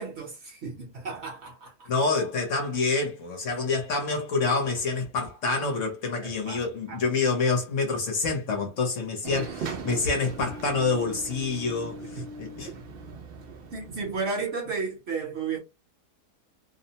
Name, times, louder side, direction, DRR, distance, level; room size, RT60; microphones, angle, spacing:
voice 1, 0.0-1.9 6.2-7.0 12.2-12.3 13.7-15.6, right 4 dB, 50° right, 0.9 m, -33 dB
voice 2, 1.9-12.7, left 4 dB, 60° left, 1.0 m, -27 dB
sound 1, 9.2-14.2, right 4 dB, 75° right, 0.5 m, -39 dB
2.7 x 2.0 x 2.7 m
omnidirectional pair, 1.6 m